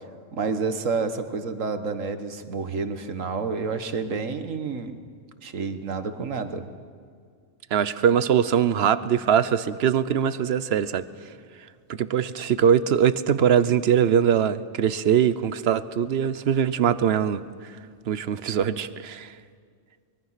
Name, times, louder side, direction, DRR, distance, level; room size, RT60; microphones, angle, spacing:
voice 1, 0.3-4.9 5.4-6.6, right 4 dB, 85° right, 8 dB, 1.6 m, -29 dB
voice 2, 7.7-11.0 12.0-17.8 18.1-19.3, right 8 dB, 60° right, 15 dB, 0.9 m, -22 dB
24.0 x 22.0 x 5.8 m, 2.1 s
omnidirectional pair, 1.3 m